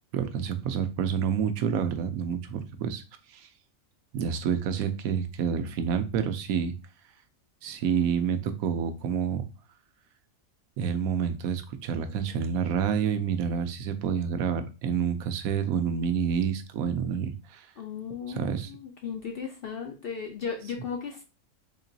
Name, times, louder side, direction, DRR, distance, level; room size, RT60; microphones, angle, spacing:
voice 1, 0.1-3.0 3.3-3.5 4.1-6.7 7.6-9.4 10.8-17.7 18.3-18.7, right 7 dB, 90° right, 9 dB, 1.0 m, -28 dB
voice 2, 17.8-21.2, left 6 dB, 65° left, 3 dB, 0.6 m, -36 dB
3.7 x 2.9 x 2.6 m, 0.31 s
omnidirectional pair, 1.4 m